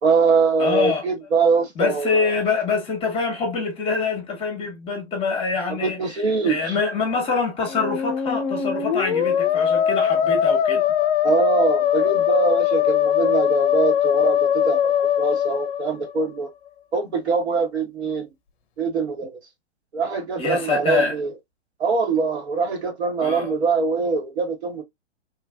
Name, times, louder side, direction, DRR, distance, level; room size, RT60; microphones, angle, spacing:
voice 1, 0.0-2.3 5.7-6.8 11.2-16.5 16.9-18.3 18.8-19.4 19.9-21.3 21.8-24.8, right 5 dB, 70° right, 1.3 m, -23 dB
voice 2, 0.6-1.1 1.8-10.8 20.4-21.2 23.2-23.5, left 4 dB, 15° left, 0.9 m, -25 dB
Musical instrument, 7.6-16.4, left 9 dB, 50° left, 0.6 m, -21 dB
3.1 x 2.4 x 2.3 m
hypercardioid pair, 125°, 34 cm